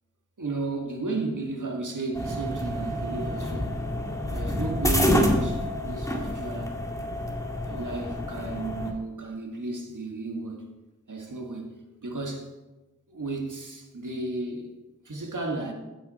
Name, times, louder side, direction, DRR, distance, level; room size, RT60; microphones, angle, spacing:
voice 1, 0.4-3.8 4.3-6.8 7.6-10.7 11.1-12.5 13.1-14.7 15.1-15.7, right 3 dB, 80° right, 1.8 m, -33 dB
sound 1, 2.1-8.9, equal, 10° left, 2.0 m, -28 dB
15.0 x 8.4 x 4.2 m
wide cardioid pair, 50°, 30 cm